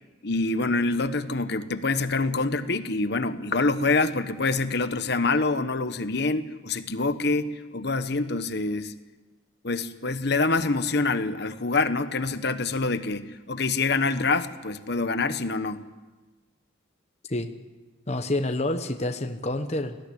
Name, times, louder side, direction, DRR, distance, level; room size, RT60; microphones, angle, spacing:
voice 1, 0.2-8.9 9.6-15.9, left 3 dB, 55° left, 11 dB, 1.1 m, -26 dB
voice 2, 18.1-20.0, left 1 dB, 35° left, 7 dB, 1.0 m, -28 dB
20.0 x 15.0 x 10.0 m, 1.2 s
head